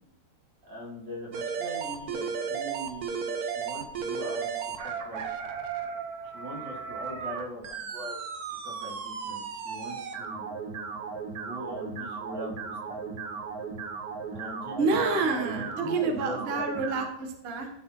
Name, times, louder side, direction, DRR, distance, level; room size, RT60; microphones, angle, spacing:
voice 1, 0.7-4.5 4.8-5.2 6.3-8.2 8.6-10.7 11.4-13.0 14.3-16.6, equal, 80° right, -3 dB, 3.1 m, -41 dB
sound 1, 1.3-17.1, right 6 dB, 65° right, 1.3 m, -35 dB
voice 2, 14.8-17.7, right 4 dB, 40° right, 4 dB, 1.1 m, -28 dB
11.5 x 4.1 x 4.3 m, 0.81 s
omnidirectional pair, 1.9 m